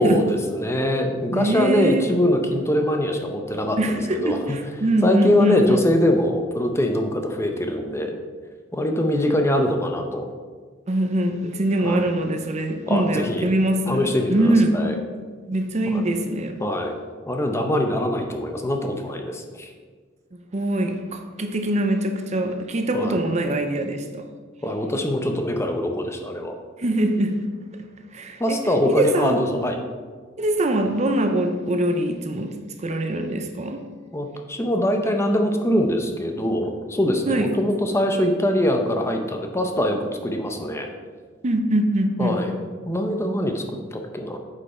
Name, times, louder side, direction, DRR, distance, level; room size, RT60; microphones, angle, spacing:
voice 1, 0.0-4.6 5.0-8.1 8.7-10.3 11.8-12.1 12.9-13.5 13.9-15.0 15.9-16.0 16.6-16.9 17.3-19.7 22.9-23.2 24.6-26.5 28.4-29.8 34.1-40.9 42.2-42.5 42.9-44.4, left 1 dB, 15° left, 4 dB, 0.7 m, -23 dB
voice 2, 1.3-2.1 3.8-5.8 10.9-14.8 15.5-16.6 20.3-24.2 26.8-27.5 28.1-28.6 28.9-29.4 30.4-33.8 37.3-37.6 41.4-42.4, right 1 dB, 35° right, 6 dB, 0.6 m, -23 dB
8.2 x 5.4 x 4.3 m, 1.5 s
head